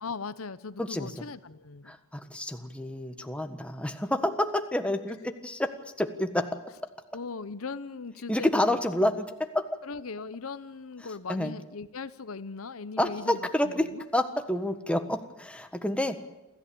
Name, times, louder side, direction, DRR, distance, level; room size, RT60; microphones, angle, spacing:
voice 1, 0.0-1.9 7.1-8.8 9.8-13.4 13.7-14.0, left 4 dB, 80° left, 14 dB, 0.9 m, -39 dB
voice 2, 0.8-1.1 1.9-5.7 6.0-6.5 8.3-9.7 11.3-11.5 13.0-13.9 14.1-16.2, left 1 dB, 5° left, 7 dB, 1.4 m, -28 dB
28.0 x 14.5 x 8.7 m, 1.0 s
head